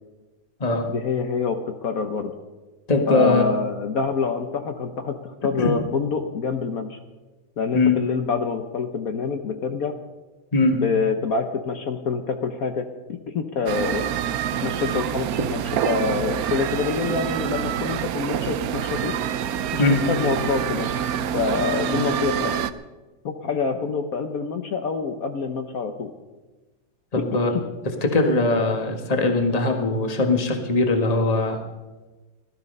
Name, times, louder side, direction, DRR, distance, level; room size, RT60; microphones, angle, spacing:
voice 1, 0.9-2.3 3.1-7.0 7.6-9.9 10.7-14.1 14.6-19.1 19.7-20.9 21.3-22.6 23.2-26.1 27.1-27.2, left 5 dB, 55° left, 6 dB, 1.2 m, -26 dB
voice 2, 2.9-3.4 5.6-5.7 7.7-8.0 10.5-10.8 19.8-20.0 21.9-22.0 27.1-27.5 28.0-31.6, left 3 dB, 20° left, 4 dB, 1.5 m, -20 dB
sound 1, 13.7-22.7, right 9 dB, 65° right, 0.9 m, -26 dB
17.0 x 12.5 x 5.4 m, 1.2 s
omnidirectional pair, 2.0 m